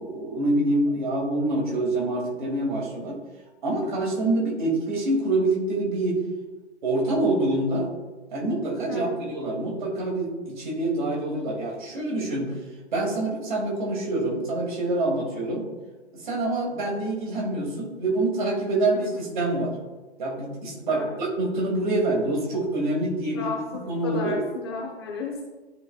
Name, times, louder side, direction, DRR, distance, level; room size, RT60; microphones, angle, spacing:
voice 1, 0.0-3.2 3.6-6.1 6.8-7.9 8.3-12.5 12.9-15.6 16.1-19.7 20.2-23.5 23.9-24.4, right 2 dB, 45° right, -1 dB, 2.1 m, -26 dB
voice 2, 8.9-9.2 18.9-19.2 20.9-21.2 23.3-25.4, left 4 dB, 25° left, -1 dB, 0.6 m, -34 dB
12.0 x 4.0 x 2.3 m, 1.2 s
figure-of-eight pair, 130°, 33 cm